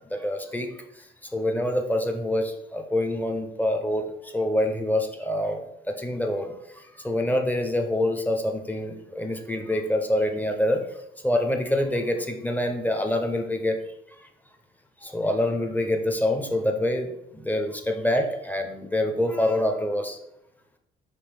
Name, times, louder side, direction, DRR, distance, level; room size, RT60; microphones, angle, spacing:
voice 1, 0.1-13.8 14.1-14.3 15.0-20.2, left 1 dB, 10° left, 5 dB, 0.7 m, -26 dB
5.1 x 3.0 x 3.4 m, 0.82 s
cardioid pair, 90°, 20 cm